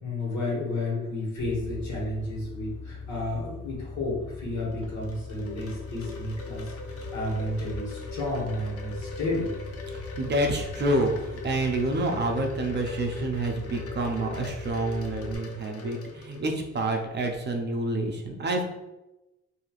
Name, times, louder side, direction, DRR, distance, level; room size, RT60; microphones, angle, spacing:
voice 1, 0.0-9.5, left 2 dB, 65° left, -4 dB, 1.4 m, -32 dB
sound 1, 1.4-15.4, left 4 dB, 20° left, 0.9 m, -41 dB
Wind chime, 4.6-16.8, left 3 dB, 50° left, 0.7 m, -41 dB
voice 2, 10.2-18.6, right 2 dB, 35° right, 2 dB, 0.5 m, -28 dB
3.2 x 2.7 x 2.4 m, 0.98 s
cardioid pair, 90°, 30 cm